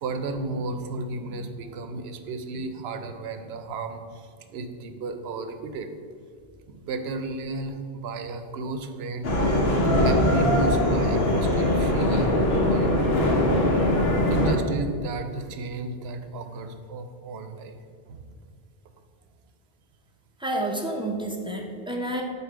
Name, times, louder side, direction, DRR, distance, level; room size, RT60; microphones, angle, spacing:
voice 1, 0.0-5.9 6.7-9.3 10.0-12.3 12.6-12.9 14.3-17.8 18.1-18.2, right 3 dB, 80° right, 8 dB, 0.8 m, -33 dB
sound 1, 9.2-14.5, left 1 dB, 75° left, 1.1 m, -21 dB
voice 2, 20.4-22.2, right 1 dB, 5° right, 0 dB, 0.4 m, -29 dB
7.8 x 2.7 x 4.9 m, 2.1 s
omnidirectional pair, 1.0 m